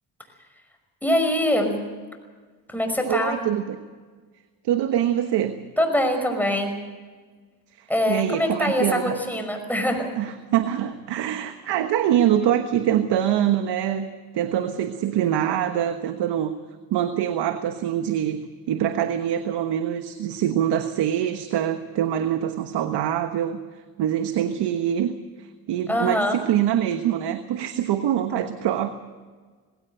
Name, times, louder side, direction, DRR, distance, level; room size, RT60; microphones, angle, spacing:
voice 1, 1.0-1.7 2.7-3.4 5.8-6.8 7.9-10.1 25.9-26.4, left 1 dB, 5° left, 4 dB, 5.6 m, -23 dB
voice 2, 3.1-3.8 4.6-5.5 7.7-9.2 10.2-14.1 14.3-16.5 16.9-18.4 18.7-23.6 24.0-28.9, right 10 dB, 75° right, 8 dB, 1.3 m, -24 dB
19.0 x 17.5 x 7.8 m, 1.5 s
cardioid pair, 85°, 41 cm